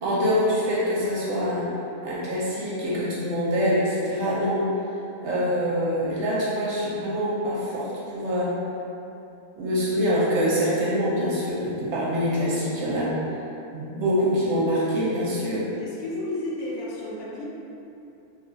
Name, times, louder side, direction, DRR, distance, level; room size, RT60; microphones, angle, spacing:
voice 1, 0.0-1.7 2.0-4.7 5.2-8.5 9.6-13.2 13.7-15.7, equal, 60° right, -7 dB, 0.9 m, -25 dB
voice 2, 15.7-17.4, left 1 dB, 70° left, -5 dB, 1.1 m, -32 dB
2.6 x 2.3 x 3.9 m, 2.8 s
omnidirectional pair, 1.5 m